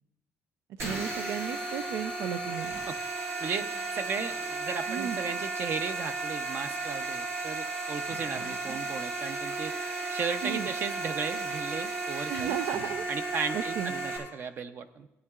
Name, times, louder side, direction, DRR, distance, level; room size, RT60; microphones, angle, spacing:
sound 1, 0.8-14.2, right 3 dB, 65° right, 3.4 m, -34 dB
voice 1, 0.8-2.8 4.9-5.2 10.4-10.7 12.3-13.1 13.5-13.9, right 9 dB, 85° right, 9 dB, 0.4 m, -34 dB
voice 2, 3.4-9.7 10.1-12.6 13.1-15.1, right 5 dB, 45° right, 9 dB, 0.6 m, -35 dB
17.5 x 9.6 x 2.4 m, 0.94 s
cardioid pair, 160°, 5 cm